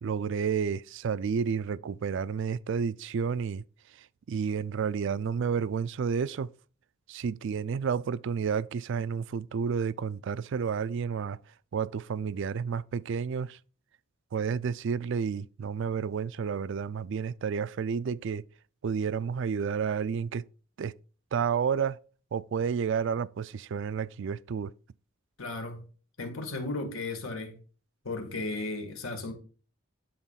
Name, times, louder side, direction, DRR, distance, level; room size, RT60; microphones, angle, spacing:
voice 1, 0.0-3.6 4.0-6.5 7.1-11.4 11.7-13.6 14.3-18.4 18.8-20.4 20.8-20.9 21.3-22.0 22.3-24.7, right 6 dB, 60° right, 0.4 m, -30 dB
voice 2, 25.4-25.9 26.2-27.6 28.0-29.3, left 2 dB, 90° left, 2.1 m, -35 dB
10.5 x 4.0 x 5.6 m
head